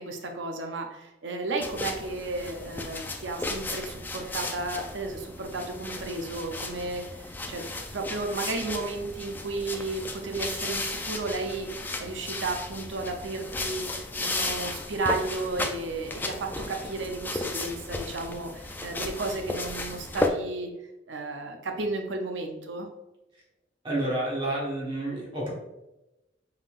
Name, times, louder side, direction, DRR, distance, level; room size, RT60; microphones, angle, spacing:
voice 1, 0.0-7.6 7.9-11.7 12.0-13.9 14.2-20.7 21.1-22.9, right 2 dB, 80° right, 4 dB, 0.6 m, -33 dB
sound 1, 1.6-20.3, left 2 dB, 10° left, 0.3 m, -35 dB
voice 2, 23.8-25.5, right 1 dB, 25° right, -5 dB, 1.2 m, -29 dB
5.4 x 3.5 x 2.4 m, 0.95 s
head